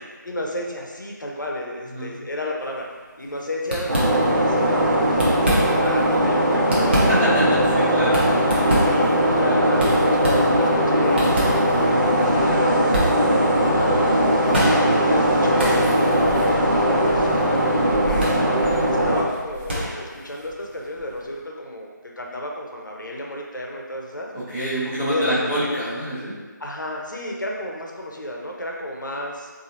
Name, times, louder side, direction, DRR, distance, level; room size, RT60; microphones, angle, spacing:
voice 1, 0.2-2.8 3.2-7.2 7.6-7.8 8.6-13.5 14.5-15.8 16.3-18.3 18.8-24.3 25.1-25.7 26.6-29.5, left 1 dB, 70° left, -1 dB, 0.7 m, -32 dB
sound 1, 2.7-3.0 3.2-3.4 3.7-4.6 5.0-6.0 6.4-21.3, equal, 35° right, 0.7 m, -28 dB
sound 2, 3.9-19.2, equal, 75° right, 0.9 m, -19 dB
voice 2, 7.1-8.6 13.9-14.2 24.3-26.4, equal, 5° right, -17 dB, 0.5 m, -26 dB
3.8 x 2.7 x 2.8 m, 1.4 s
figure-of-eight pair, 165°, 11 cm